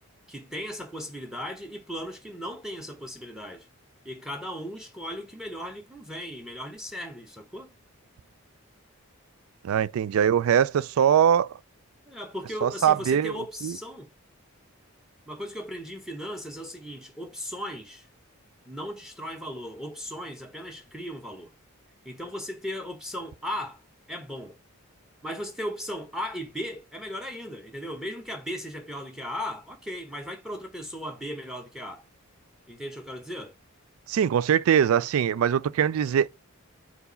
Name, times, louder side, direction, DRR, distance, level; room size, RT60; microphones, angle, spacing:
voice 1, 0.3-3.7 4.0-7.7 12.1-14.1 15.3-18.1 18.7-21.5 22.0-23.8 24.1-24.6 25.2-32.0 32.7-33.5, equal, ahead, 1.1 m, -37 dB
voice 2, 9.6-11.6 12.6-13.3 13.6-13.7 34.1-36.3, right 8 dB, 75° right, 0.3 m, -22 dB
4.6 x 4.0 x 5.5 m
head